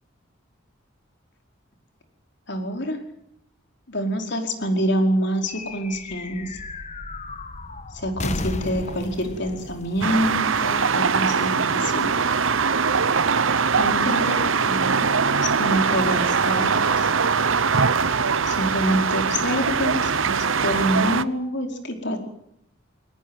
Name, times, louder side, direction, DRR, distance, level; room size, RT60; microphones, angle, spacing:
voice 1, 2.5-3.0 3.9-6.6 7.9-12.3 13.8-17.1 18.4-22.2, equal, 55° left, 4 dB, 4.9 m, -26 dB
sound 1, 5.5-11.2, left 2 dB, 35° left, 1.4 m, -35 dB
sound 2, 10.0-21.2, right 5 dB, 75° right, 1.0 m, -22 dB
23.0 x 20.0 x 9.2 m, 0.73 s
head